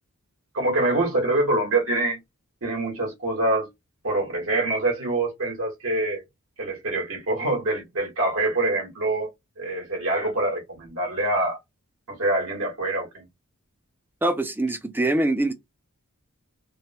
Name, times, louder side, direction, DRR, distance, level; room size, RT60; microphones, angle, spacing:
voice 1, 0.5-2.2 2.6-3.7 4.0-6.2 6.6-9.3 9.6-11.6 12.1-13.2, right 2 dB, 70° right, 1.4 m, -25 dB
voice 2, 14.2-15.5, right 2 dB, 10° right, 0.4 m, -23 dB
3.0 x 2.1 x 2.8 m
head